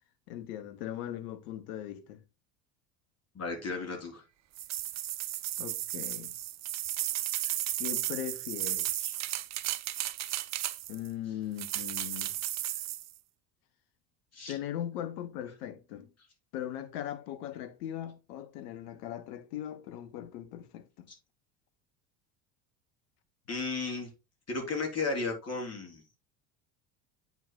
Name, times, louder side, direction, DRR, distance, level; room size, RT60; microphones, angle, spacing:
voice 1, 0.3-2.2 5.6-6.4 7.8-8.9 10.9-12.4 14.5-16.1 16.5-21.1, left 11 dB, 65° left, 1.2 m, -39 dB
voice 2, 3.3-4.2 7.4-7.6 9.0-9.1 14.3-14.6 21.1-21.2 23.5-24.1 24.5-26.0, left 3 dB, 30° left, 3.8 m, -34 dB
sound 1, 4.5-11.1 11.6-13.1, right 14 dB, 35° right, 0.6 m, -34 dB
8.9 x 5.8 x 2.3 m
hypercardioid pair, 70°, 50 cm